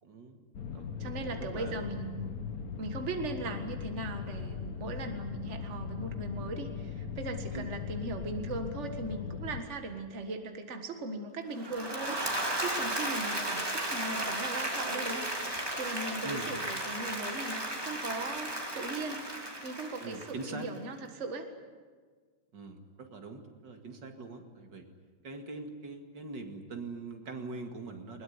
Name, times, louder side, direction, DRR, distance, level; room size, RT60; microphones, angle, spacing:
voice 1, 0.0-1.9 7.5-7.7 16.2-16.5 20.0-20.7 22.5-24.9 25.2-28.2, right 3 dB, 70° right, 5 dB, 2.8 m, -43 dB
sound 1, 0.5-9.6, left 6 dB, 55° left, 1.5 m, -39 dB
voice 2, 1.0-2.3 2.8-19.2 19.6-21.5, right 2 dB, 40° right, 5 dB, 2.0 m, -39 dB
Applause / Crowd, 11.5-20.7, right 1 dB, 10° right, 2.7 m, -35 dB
21.0 x 21.0 x 9.7 m, 1.5 s
omnidirectional pair, 2.0 m